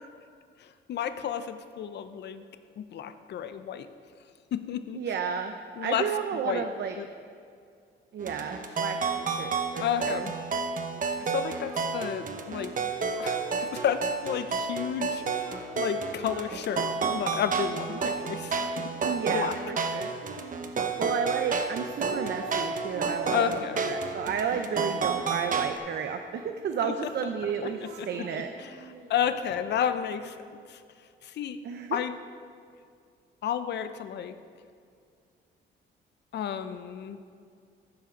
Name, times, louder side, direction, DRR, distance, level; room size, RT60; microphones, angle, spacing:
voice 1, 0.6-2.4 2.8-3.9 4.5-5.0 5.8-6.0 6.4-6.6 7.0-7.1 9.8-10.3 11.2-12.7 13.2-15.4 15.8-18.6 19.3-19.5 23.3-23.9 26.8-26.9 27.6-27.7 28.0-28.7 29.1-30.4 30.7-30.8 31.2-31.6 31.9-32.1 33.4-34.3 36.3-37.2, left 8 dB, 60° left, 10 dB, 0.6 m, -31 dB
voice 2, 4.9-5.5 5.8-7.0 8.1-10.3 19.0-20.1 21.0-23.6 23.9-27.8 28.1-28.5 31.6-32.0, right 7 dB, 60° right, 6 dB, 0.6 m, -32 dB
sound 1, 8.2-25.8, right 5 dB, 40° right, 0.9 m, -31 dB
Singing, 10.8-14.1 15.2-17.2 17.5-18.8 20.2-21.1 21.7-22.7 22.9-26.6 27.4-29.6, right 4 dB, 90° right, 1.1 m, -44 dB
14.0 x 5.8 x 5.1 m, 2.3 s
cardioid pair, 90°, 20 cm